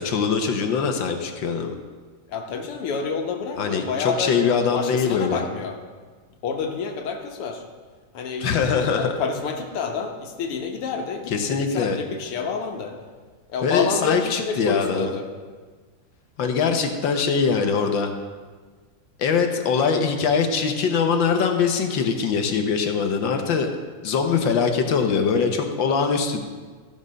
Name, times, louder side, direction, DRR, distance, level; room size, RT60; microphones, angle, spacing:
voice 1, 0.0-1.7 3.6-5.4 8.4-9.2 11.3-12.0 13.6-15.1 16.4-18.1 19.2-23.7 24.0-26.4, left 5 dB, 65° left, 5 dB, 1.5 m, -22 dB
voice 2, 2.3-4.3 4.7-5.8 6.4-7.6 8.1-8.5 9.0-12.9 13.5-15.3, left 5 dB, 85° left, 3 dB, 2.0 m, -28 dB
14.5 x 5.4 x 6.3 m, 1.5 s
omnidirectional pair, 2.4 m